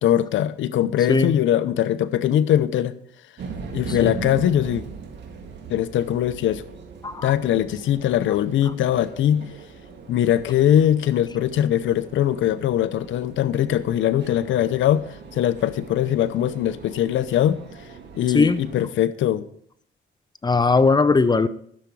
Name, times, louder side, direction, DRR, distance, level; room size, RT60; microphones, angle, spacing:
voice 1, 0.0-2.9 3.7-4.8 5.7-6.6 7.2-9.5 10.1-17.6 18.1-19.5, left 11 dB, 75° left, 14 dB, 0.7 m, -21 dB
sound 1, 3.4-18.8, right 5 dB, 60° right, 2.1 m, -40 dB
voice 2, 3.9-4.2 7.0-7.3 18.3-18.6 20.4-21.5, left 4 dB, 20° left, 14 dB, 0.6 m, -19 dB
11.5 x 7.0 x 4.7 m, 0.64 s
cardioid pair, 90°, 20 cm